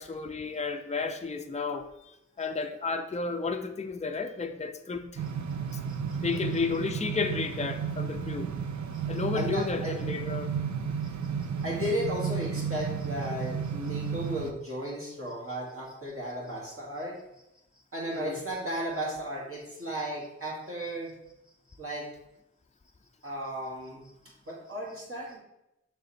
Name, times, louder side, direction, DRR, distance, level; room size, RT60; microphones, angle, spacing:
voice 1, 0.0-5.1 6.2-8.5 9.1-10.5 18.1-18.4, left 4 dB, 25° left, 6 dB, 0.5 m, -32 dB
sound 1, 5.2-14.5, right 7 dB, 70° right, 0.5 m, -33 dB
voice 2, 5.9-6.7 8.9-9.0 9.3-10.0 11.6-17.2 17.9-21.1 21.8-22.1 23.2-24.0 24.5-25.4, equal, 50° right, -4 dB, 2.1 m, -35 dB
6.7 x 3.4 x 4.2 m, 0.87 s
wide cardioid pair, 45°, 29 cm